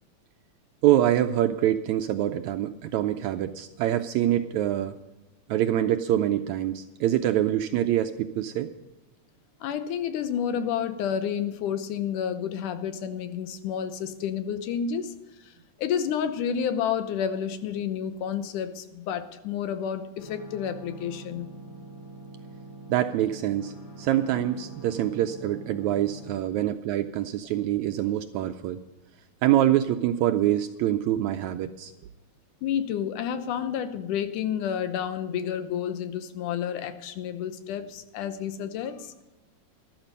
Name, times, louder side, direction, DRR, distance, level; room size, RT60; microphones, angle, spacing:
voice 1, 0.8-4.9 5.5-8.7 22.9-28.8 29.4-31.9, right 12 dB, 80° right, 8 dB, 1.7 m, -25 dB
voice 2, 9.6-15.1 15.4-15.5 15.8-21.5 32.6-39.2, left 8 dB, 80° left, 10 dB, 2.4 m, -30 dB
sound 1, 20.2-26.3, right 2 dB, 35° left, 3.1 m, -44 dB
13.5 x 12.5 x 5.3 m, 1.0 s
omnidirectional pair, 3.7 m